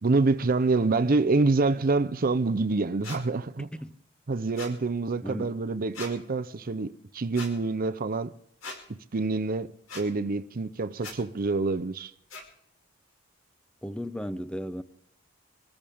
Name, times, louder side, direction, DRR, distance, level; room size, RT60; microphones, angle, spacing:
voice 1, 0.0-3.7 4.3-8.3 9.1-12.1, right 3 dB, 45° right, 0.6 m, -26 dB
sound 1, 3.0-3.2 4.5-4.7 5.9-6.1 7.3-7.5 8.6-8.8 9.9-10.0 11.0-11.2 12.3-12.4, left 3 dB, 75° left, 5.5 m, -39 dB
voice 2, 3.6-3.9 5.2-5.5 13.8-14.8, equal, 5° left, 0.6 m, -35 dB
25.5 x 14.0 x 3.5 m
head